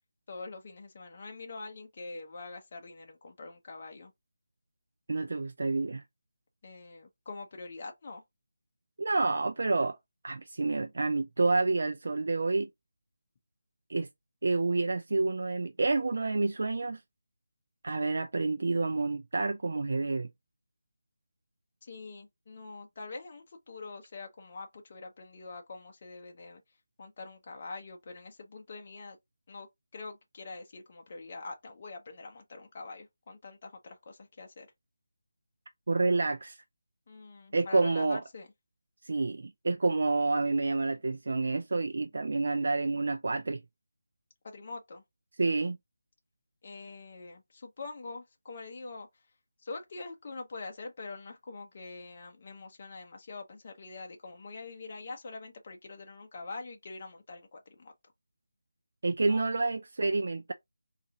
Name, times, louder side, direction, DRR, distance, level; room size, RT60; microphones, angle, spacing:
voice 1, 0.3-4.1 6.6-8.2 21.8-26.6 27.0-29.2 29.5-34.7 37.1-38.5 44.4-45.0 46.6-49.2 49.6-57.9 59.2-59.5, left 3 dB, 30° left, 0.7 m, -44 dB
voice 2, 5.1-6.0 9.0-10.0 10.2-12.7 13.9-14.1 14.4-17.0 17.8-20.3 35.9-36.6 37.5-38.2 39.0-43.6 45.4-45.8 59.0-60.5, right 3 dB, 60° right, 0.4 m, -28 dB
4.0 x 2.4 x 2.6 m
figure-of-eight pair, 175°, 0 cm